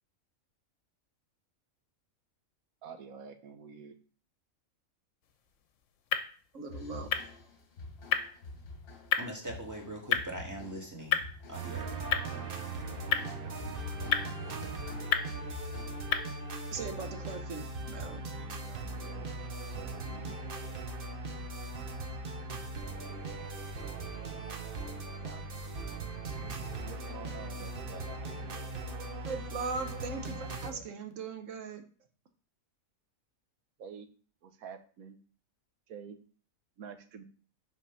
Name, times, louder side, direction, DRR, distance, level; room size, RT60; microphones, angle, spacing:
voice 1, 2.8-4.0 18.0-18.1 18.3-19.2 19.6-20.4 25.2-28.7 30.4-30.8 33.8-34.1 34.4-35.2 35.9-36.2 36.8-37.2, right 6 dB, 85° right, 9 dB, 1.3 m, -49 dB
sound 1, 5.2-16.5, left 8 dB, 70° left, 1.0 m, -36 dB
voice 2, 6.5-7.1 16.7-18.2 29.2-31.8, right 4 dB, 65° right, 7 dB, 1.2 m, -39 dB
sound 2, 6.7-16.2, left 3 dB, 45° left, 1.2 m, -48 dB
voice 3, 9.2-11.2 11.5-12.0, right 1 dB, 15° right, 0 dB, 1.5 m, -41 dB
sound 3, 11.5-30.7, right 2 dB, 45° right, 0.9 m, -39 dB
5.8 x 4.2 x 5.6 m, 0.41 s
omnidirectional pair, 1.4 m